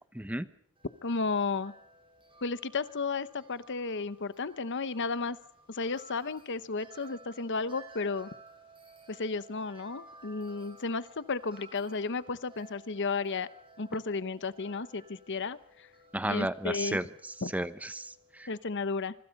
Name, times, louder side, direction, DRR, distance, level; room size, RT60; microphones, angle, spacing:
voice 1, 0.2-0.5 16.1-17.1 17.5-18.5, right 1 dB, 5° right, 13 dB, 0.9 m, -33 dB
Wind chime, 0.8-18.7, right 2 dB, 25° right, 7.6 m, -56 dB
voice 2, 1.0-1.7 2.4-5.4 5.7-8.3 9.1-13.5 13.8-15.9 16.2-17.0 17.4-17.5 18.5-19.1, left 4 dB, 55° left, 15 dB, 1.0 m, -33 dB
26.0 x 24.5 x 5.3 m, 0.69 s
head